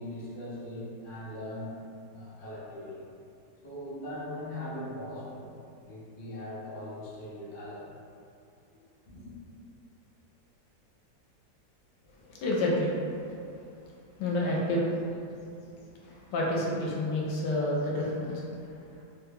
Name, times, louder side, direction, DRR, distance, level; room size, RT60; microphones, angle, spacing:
voice 1, 0.0-1.8 2.1-3.0 3.6-5.6 5.8-7.9 9.1-9.3, left 1 dB, 50° left, -8 dB, 0.6 m, -40 dB
voice 2, 12.3-13.0 14.2-14.9 16.0-18.4, left 1 dB, 80° left, -4 dB, 1.2 m, -29 dB
3.0 x 2.2 x 3.3 m, 2.5 s
omnidirectional pair, 1.9 m